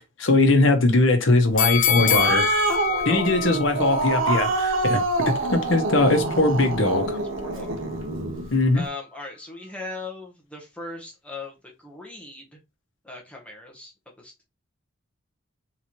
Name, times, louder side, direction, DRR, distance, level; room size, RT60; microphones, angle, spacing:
voice 1, 0.2-2.5 3.1-5.0 5.5-7.2 8.5-8.8, left 2 dB, 70° left, 0.9 m, -20 dB
sound 1, 1.6-4.7 5.1-5.2, left 9 dB, 40° left, 0.5 m, -25 dB
Growling, 1.7-8.5, right 3 dB, 75° right, 0.7 m, -26 dB
voice 2, 2.9-3.3 7.2-7.7 8.7-12.6 13.0-14.5, left 3 dB, 5° left, 0.8 m, -39 dB
3.8 x 3.0 x 2.9 m
head